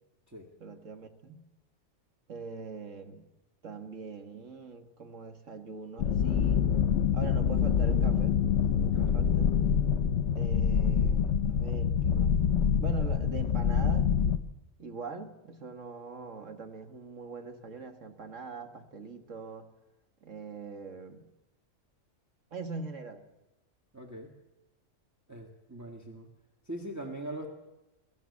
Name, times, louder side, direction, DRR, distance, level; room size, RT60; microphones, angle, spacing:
voice 1, 0.6-1.4 2.3-3.2 3.6-6.8 7.1-9.6 10.4-12.3 12.8-14.3 14.8-19.7 20.2-21.2 22.5-23.2, right 4 dB, 60° right, 7 dB, 1.9 m, -42 dB
sound 1, 6.0-14.4, left 7 dB, 60° left, 1.1 m, -26 dB
voice 2, 23.9-24.3 25.3-26.3 26.7-27.5, right 1 dB, 10° right, 3 dB, 1.8 m, -41 dB
23.5 x 13.5 x 8.4 m, 1.0 s
omnidirectional pair, 1.5 m